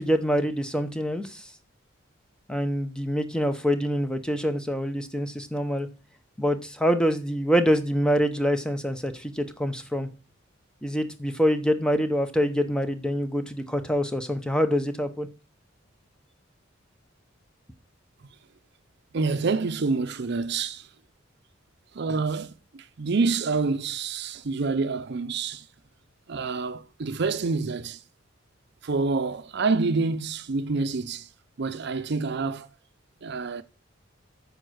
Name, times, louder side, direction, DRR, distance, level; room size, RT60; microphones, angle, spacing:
voice 1, 0.0-1.5 2.5-5.9 6.4-10.1 10.8-15.3, equal, 5° left, 0.8 m, -25 dB
voice 2, 19.1-20.9 21.9-25.7 26.3-28.0 28.8-31.3 31.6-32.7 33.2-33.6, right 4 dB, 55° right, 0.5 m, -27 dB
9.3 x 5.3 x 6.3 m
head